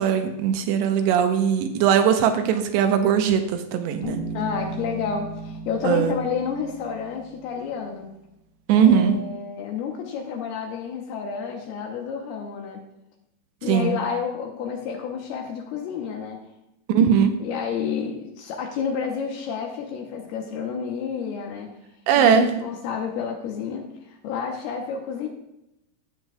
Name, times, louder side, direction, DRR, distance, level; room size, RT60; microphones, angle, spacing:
voice 1, 0.0-4.2 5.8-6.1 8.7-9.2 13.7-14.0 16.9-17.4 22.1-22.5, right 8 dB, 90° right, 6 dB, 2.9 m, -19 dB
Bass guitar, 4.0-7.8, right 2 dB, 60° left, 2.3 m, -36 dB
voice 2, 4.3-8.1 8.7-12.8 13.6-16.4 17.4-21.7 22.2-25.3, left 6 dB, 80° left, 2 dB, 2.5 m, -30 dB
15.5 x 7.2 x 2.3 m, 0.87 s
omnidirectional pair, 5.0 m